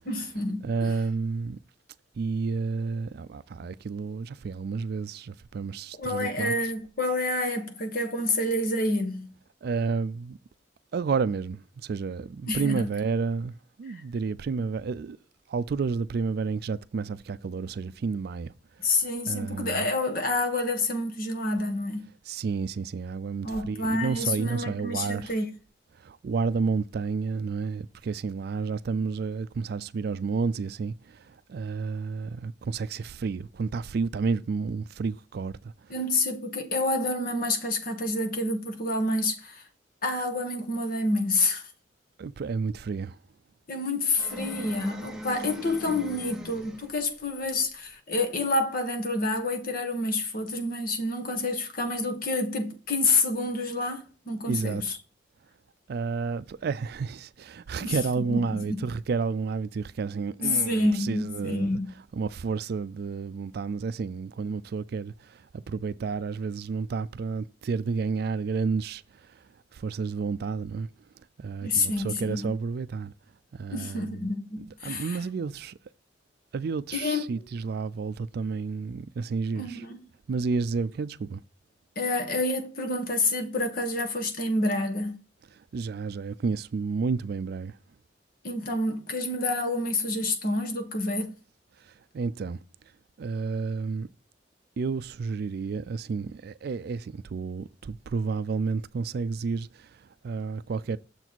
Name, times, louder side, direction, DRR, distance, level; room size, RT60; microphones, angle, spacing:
voice 1, 0.0-0.9 6.0-9.3 12.5-12.9 13.9-14.0 18.8-22.0 23.4-25.5 35.9-39.6 40.0-41.7 43.7-55.0 57.8-58.0 58.3-58.8 60.4-61.9 71.6-72.5 73.7-75.2 77.0-77.2 79.6-80.0 81.9-85.2 88.4-91.3, left 2 dB, 50° left, 1.4 m, -28 dB
voice 2, 0.6-1.6 2.2-6.6 9.6-10.4 10.9-15.2 15.5-18.5 18.8-19.0 19.3-19.9 22.3-25.3 26.0-35.9 42.2-43.2 54.5-54.8 55.9-61.8 62.1-69.4 69.7-70.9 71.4-73.1 73.5-74.2 74.6-75.8 76.5-79.8 80.3-81.4 85.5-87.8 91.8-92.6 93.2-94.1 94.8-101.0, right 4 dB, 60° right, 0.3 m, -31 dB
sound 1, 44.1-47.0, left 1 dB, 5° right, 0.8 m, -38 dB
6.9 x 4.0 x 4.5 m
head